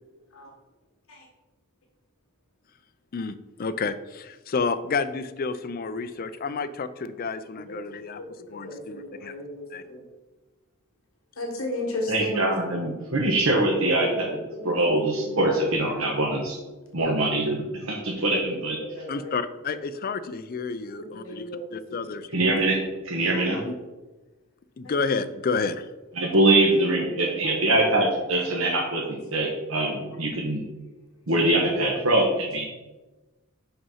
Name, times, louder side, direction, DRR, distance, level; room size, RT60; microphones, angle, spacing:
voice 1, 3.1-8.2 8.5-9.3 9.7-9.8 19.1-21.4 21.7-22.3 23.7-23.8 24.8-25.9, left 4 dB, 40° left, 11 dB, 0.4 m, -30 dB
voice 2, 8.1-10.1 11.4-12.5 14.2-14.9 15.2-15.4 15.8-15.9 17.0-17.1 18.2-18.5 18.8-19.4 21.1-22.0 24.8-24.9 27.2-27.3 27.6-27.7 28.0-28.1 29.7-29.8 31.7-32.0, left 1 dB, 70° left, 0 dB, 1.5 m, -35 dB
voice 3, 12.1-14.4 14.6-16.6 16.9-18.8 22.3-22.8 23.0-23.6 26.2-30.6 31.3-32.6, right 2 dB, 70° right, -2 dB, 1.2 m, -23 dB
5.8 x 5.5 x 5.5 m, 1.2 s
head